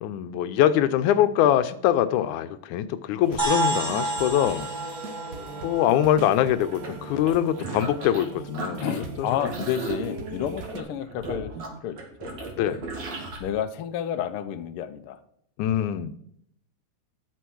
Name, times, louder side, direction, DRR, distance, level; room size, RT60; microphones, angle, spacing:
voice 1, 0.0-4.7 5.6-8.9 12.6-12.8 15.6-16.1, left 11 dB, 90° left, 12 dB, 2.2 m, -23 dB
sound 1, 3.2-10.8, right 3 dB, 85° right, 0.7 m, -39 dB
sound 2, 3.4-7.1, right 2 dB, 15° right, 2.8 m, -30 dB
sound 3, 6.7-8.3 8.5-13.4, right 3 dB, 60° right, 3.3 m, -36 dB
voice 2, 8.8-12.8 13.4-15.2, left 9 dB, 75° left, 9 dB, 1.3 m, -31 dB
11.5 x 6.8 x 6.2 m, 0.71 s
omnidirectional pair, 3.4 m